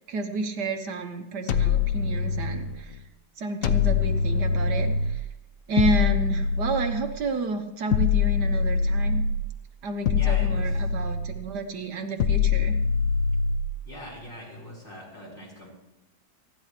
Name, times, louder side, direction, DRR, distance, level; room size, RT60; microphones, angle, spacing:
voice 1, 0.0-3.0 3.4-5.3 5.7-9.2 9.8-12.8, right 3 dB, 75° right, 5 dB, 1.8 m, -30 dB
sound 1, 1.5-2.8 3.6-5.3 5.8-7.2 7.9-9.5 10.1-11.5 12.2-13.8, left 5 dB, 60° left, 1.1 m, -24 dB
voice 2, 10.1-10.7 13.8-15.7, left 1 dB, 30° left, -4 dB, 5.3 m, -42 dB
28.5 x 11.0 x 3.3 m, 0.99 s
omnidirectional pair, 1.8 m